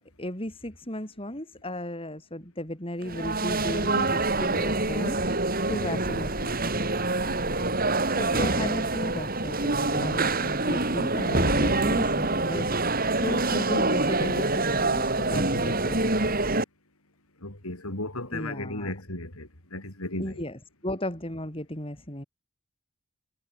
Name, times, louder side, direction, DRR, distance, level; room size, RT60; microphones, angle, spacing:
voice 1, 0.2-5.2 5.7-6.5 8.1-16.3 18.3-18.9 20.2-22.2, left 1 dB, 25° left, 5.8 m, -35 dB
sound 1, 3.0-16.6, right 2 dB, 45° right, 6.7 m, -26 dB
voice 2, 7.3-7.7 17.4-20.5, left 2 dB, 90° left, 6.8 m, -36 dB
head